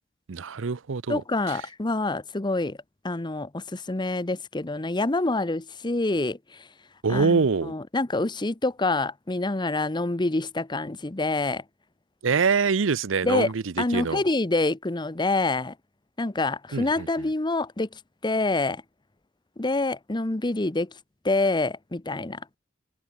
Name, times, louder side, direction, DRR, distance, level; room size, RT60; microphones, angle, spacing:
voice 1, 0.3-1.2 7.0-7.7 12.2-13.6 13.9-14.2 16.7-17.1, right 5 dB, 85° right, 0.7 m, -24 dB
voice 2, 1.1-2.8 3.0-6.7 7.1-11.6 13.2-13.5 13.8-15.7 16.2-18.8 19.6-20.9 21.2-22.4, left 2 dB, 25° left, 0.9 m, -26 dB
open air
head